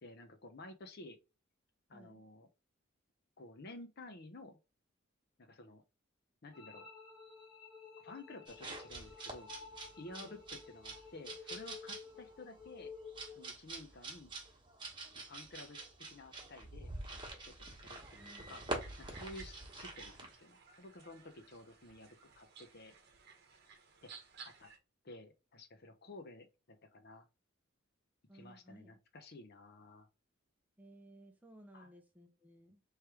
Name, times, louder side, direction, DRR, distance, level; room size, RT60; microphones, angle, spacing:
voice 1, 0.0-1.2 1.9-2.5 3.4-4.6 5.4-5.8 6.4-6.9 8.0-9.5 10.0-12.9 13.3-14.3 15.1-18.6 19.0-22.9 24.0-24.1 24.4-24.7 25.0-27.3 28.3-30.1 31.7-31.9, left 2 dB, 50° left, 0.8 m, -53 dB
voice 2, 1.9-2.2 10.1-10.4 18.1-18.6 28.3-29.0 30.8-32.8, right 1 dB, 10° right, 0.6 m, -58 dB
sound 1, 6.5-13.5, left 5 dB, 25° left, 1.2 m, -53 dB
sound 2, 8.5-20.3, right 2 dB, 25° right, 1.2 m, -47 dB
sound 3, 17.9-24.8, right 5 dB, 55° right, 1.0 m, -57 dB
3.2 x 3.2 x 4.7 m
head